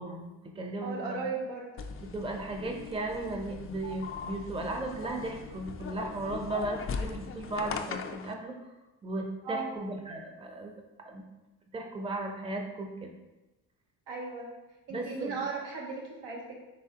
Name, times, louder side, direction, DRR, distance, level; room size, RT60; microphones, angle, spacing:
voice 1, 0.0-1.0 2.0-8.6 9.0-10.7 11.0-11.2 11.7-13.1 14.9-15.4, right 2 dB, 15° right, 3 dB, 0.6 m, -36 dB
voice 2, 0.8-1.7 9.4-9.7 14.1-14.5 14.9-16.6, right 4 dB, 85° right, -1 dB, 1.0 m, -36 dB
sound 1, 1.8-8.3, left 5 dB, 35° left, 0.4 m, -40 dB
4.3 x 3.3 x 2.8 m, 1.0 s
supercardioid pair, 65°, 43 cm